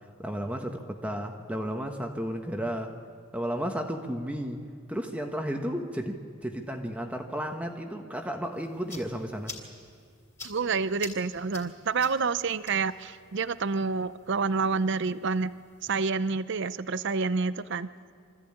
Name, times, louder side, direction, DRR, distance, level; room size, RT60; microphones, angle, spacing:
voice 1, 0.2-2.9 3.3-4.6 4.9-9.5, equal, 5° right, 3 dB, 1.1 m, -33 dB
sound 1, 8.5-15.9, left 3 dB, 15° left, 3.1 m, -48 dB
voice 2, 10.4-15.5 15.8-17.9, right 4 dB, 60° right, 15 dB, 0.6 m, -28 dB
24.5 x 14.0 x 8.7 m, 2.3 s
head